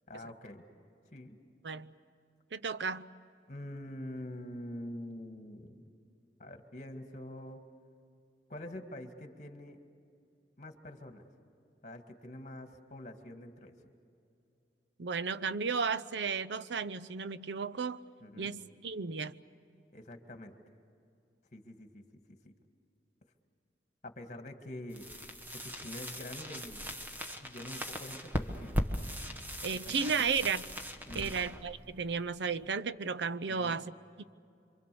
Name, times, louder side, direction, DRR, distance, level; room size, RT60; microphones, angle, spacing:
voice 1, 0.1-0.6 1.1-1.4 3.5-5.8 6.4-7.6 8.5-9.8 10.6-11.2 11.8-13.7 18.2-18.5 19.9-20.6 21.5-22.0 22.3-22.5 24.0-25.1 25.5-27.0 27.4-28.8 30.1-30.3 31.1-31.4 33.5-33.8, left 1 dB, 45° left, 6 dB, 1.9 m, -45 dB
voice 2, 2.5-3.1 15.0-18.0 18.3-19.4 29.6-30.6 31.1-33.9, right 5 dB, 80° right, 13 dB, 0.7 m, -34 dB
sound 1, 24.9-32.7, equal, 10° right, 1.3 m, -39 dB
27.5 x 24.5 x 7.0 m, 2.6 s
head